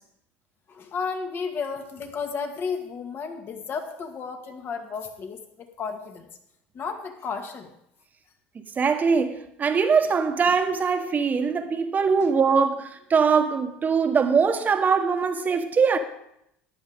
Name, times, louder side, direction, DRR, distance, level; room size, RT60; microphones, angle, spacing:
voice 1, 0.7-6.3 6.7-7.7 12.2-12.3, left 5 dB, 40° left, 1.8 m, -33 dB
voice 2, 8.5-16.0, right 5 dB, 30° right, 1.3 m, -22 dB
14.0 x 10.0 x 3.6 m
hypercardioid pair, 85°, 6 cm